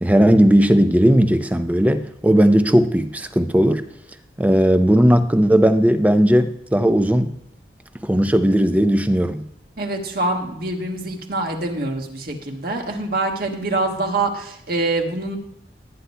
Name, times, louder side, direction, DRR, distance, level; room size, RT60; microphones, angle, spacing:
voice 1, 0.0-3.8 4.4-7.3 8.0-9.4, equal, 10° right, 9 dB, 0.6 m, -16 dB
voice 2, 9.8-15.4, right 2 dB, 55° right, 2 dB, 1.7 m, -25 dB
19.5 x 9.8 x 2.2 m, 0.76 s
head